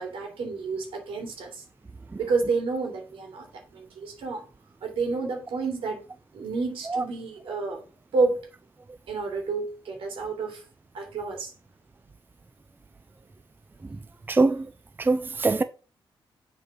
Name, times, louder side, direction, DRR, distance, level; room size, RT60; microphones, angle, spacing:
voice 1, 0.0-1.6 2.2-4.4 4.8-6.0 6.3-7.8 8.1-8.4 9.1-10.6 10.9-11.5, right 4 dB, 85° right, 3.0 m, -29 dB
voice 2, 14.3-14.7 15.0-15.6, right 3 dB, 20° right, 0.6 m, -22 dB
7.4 x 4.8 x 5.0 m
cardioid pair, 90°, 9 cm